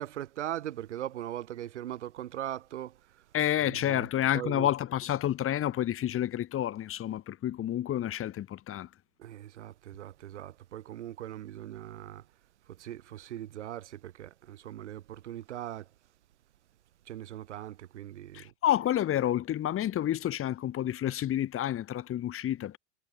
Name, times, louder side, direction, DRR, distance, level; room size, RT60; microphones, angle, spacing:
voice 1, 0.0-3.2 3.6-4.1 4.3-4.7 9.2-12.2 12.8-15.9 17.1-18.5, right 12 dB, 90° right, 5.2 m, -40 dB
voice 2, 3.3-8.9 18.3-22.8, left 12 dB, 40° left, 4.5 m, -29 dB
hypercardioid pair, 105°, 34 cm